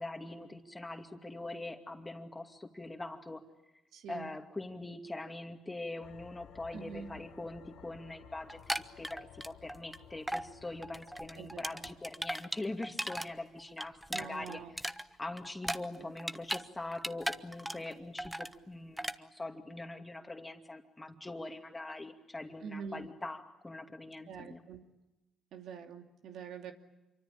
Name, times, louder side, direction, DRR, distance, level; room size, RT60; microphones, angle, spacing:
voice 1, 0.0-3.4 4.1-14.6 15.2-24.6, left 2 dB, 15° left, 5 dB, 2.5 m, -43 dB
voice 2, 3.9-4.3 6.7-7.1 11.4-11.7 14.1-14.7 16.0-16.1 22.6-23.1 24.3-24.8 25.5-26.7, right 6 dB, 75° right, 5 dB, 2.6 m, -45 dB
sound 1, 6.0-12.6, left 10 dB, 85° left, 1.4 m, -57 dB
sound 2, 8.5-10.0 10.3-10.5 10.8-13.3 13.6-16.7 16.9-17.9 18.2-18.5 19.0-19.2, equal, 5° right, 1.0 m, -37 dB
27.0 x 24.0 x 9.0 m, 0.99 s
cardioid pair, 90°, 0 cm